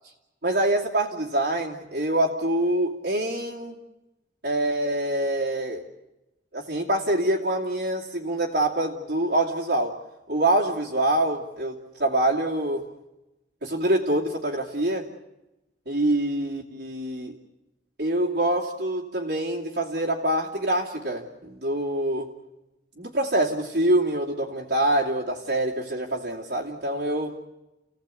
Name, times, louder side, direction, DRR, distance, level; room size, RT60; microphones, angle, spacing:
voice 1, 0.4-3.8 4.4-5.8 6.5-10.0 10.3-12.9 13.6-15.1 15.9-17.3 18.0-22.3 23.0-27.3, right 1 dB, 60° right, -6 dB, 2.6 m, -25 dB
30.0 x 17.5 x 8.4 m, 1.0 s
head